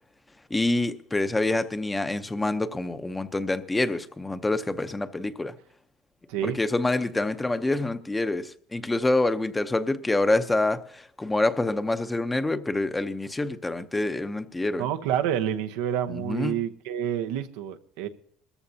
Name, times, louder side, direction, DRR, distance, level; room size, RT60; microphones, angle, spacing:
voice 1, 0.5-5.5 6.4-14.8 16.1-16.6, left 2 dB, 15° left, 0.8 m, -26 dB
voice 2, 14.8-18.1, right 10 dB, 85° right, 0.9 m, -28 dB
20.5 x 14.0 x 2.8 m
supercardioid pair, 110°, 0 cm